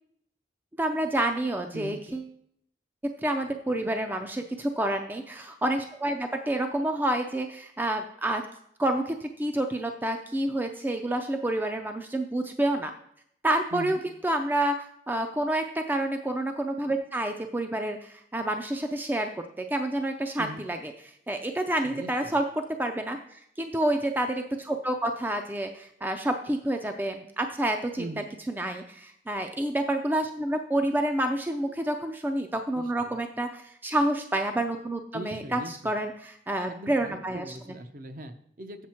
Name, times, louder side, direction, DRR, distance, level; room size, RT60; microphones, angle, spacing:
voice 1, 0.8-2.2 3.2-8.4 8.8-12.9 13.4-20.9 21.3-22.4 22.8-28.1 28.5-37.6, right 1 dB, 10° right, 5 dB, 0.4 m, -29 dB
voice 2, 13.7-14.0 20.4-20.6 21.8-22.3 28.0-28.3 32.7-33.1 35.1-36.0 36.7-38.9, right 1 dB, 50° right, 7 dB, 0.6 m, -40 dB
7.5 x 6.3 x 4.3 m, 0.69 s
head